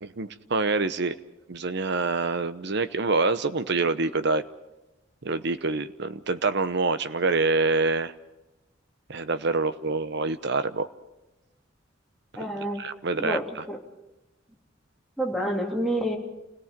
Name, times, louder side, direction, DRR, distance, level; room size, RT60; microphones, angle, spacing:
voice 1, 0.0-1.2 1.5-4.4 5.2-8.1 9.1-10.9 12.8-13.4, right 3 dB, 60° right, 12 dB, 0.9 m, -26 dB
voice 2, 12.4-12.8 13.2-13.8 15.2-16.2, equal, ahead, 0 dB, 2.9 m, -28 dB
29.0 x 17.5 x 5.2 m, 0.97 s
head